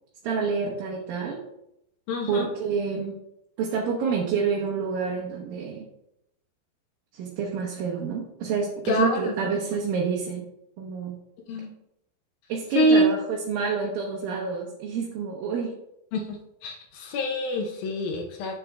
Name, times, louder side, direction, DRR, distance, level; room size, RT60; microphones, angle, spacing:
voice 1, 0.2-1.4 2.3-3.2 3.6-5.9 7.1-10.5 10.8-11.2 12.5-15.7, right 5 dB, 75° right, -1 dB, 2.7 m, -28 dB
voice 2, 2.1-2.5 8.9-9.3 11.5-11.7 12.8-13.1 16.1-16.4 16.6-18.6, equal, 80° left, 1 dB, 2.7 m, -25 dB
8.3 x 7.3 x 3.4 m, 0.82 s
omnidirectional pair, 4.2 m